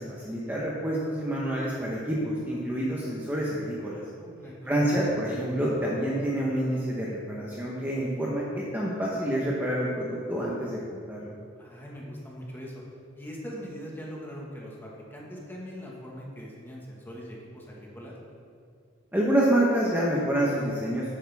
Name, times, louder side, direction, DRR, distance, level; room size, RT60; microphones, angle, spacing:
voice 1, 0.0-4.0 4.6-11.3 19.1-21.1, right 1 dB, 10° right, -5 dB, 1.1 m, -27 dB
voice 2, 4.2-4.7 11.6-12.8 13.1-18.1, equal, 10° left, -3 dB, 1.6 m, -41 dB
10.0 x 9.2 x 3.6 m, 2.3 s
head